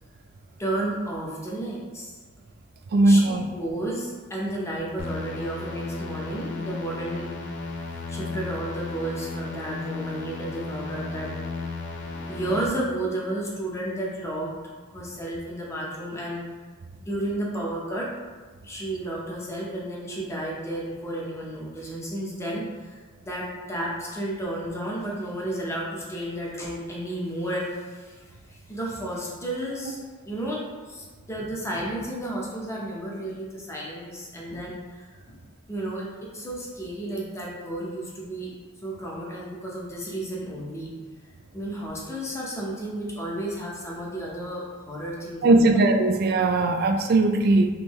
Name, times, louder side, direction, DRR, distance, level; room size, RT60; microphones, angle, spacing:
voice 1, 0.6-2.2 3.0-7.3 8.1-11.3 12.1-14.6 14.9-16.4 17.0-18.1 18.6-35.3 35.7-38.5 38.8-40.9 41.5-45.7, right 1 dB, 15° left, -4 dB, 0.6 m, -32 dB
voice 2, 2.9-3.5 45.4-47.7, right 2 dB, 50° right, 6 dB, 0.3 m, -19 dB
sound 1, 5.0-12.7, left 3 dB, 60° left, 0.5 m, -34 dB
3.6 x 2.6 x 3.0 m, 1.4 s
head